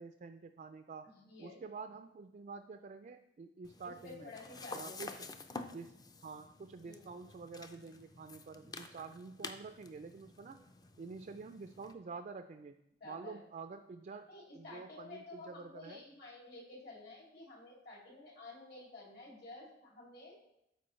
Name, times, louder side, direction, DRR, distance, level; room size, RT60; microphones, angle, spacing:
voice 1, 0.0-1.1 1.4-4.3 4.7-5.3 5.6-6.0 6.2-10.7 11.0-12.7 13.0-14.3 14.5-16.0, right 4 dB, 45° right, 8 dB, 0.3 m, -48 dB
voice 2, 1.0-1.6 3.8-5.1 6.8-7.0 13.0-13.4 14.3-20.4, left 2 dB, 60° left, -3 dB, 2.6 m, -51 dB
sound 1, 3.6-11.9, left 3 dB, 20° left, 0.4 m, -50 dB
12.0 x 4.7 x 3.1 m, 0.84 s
head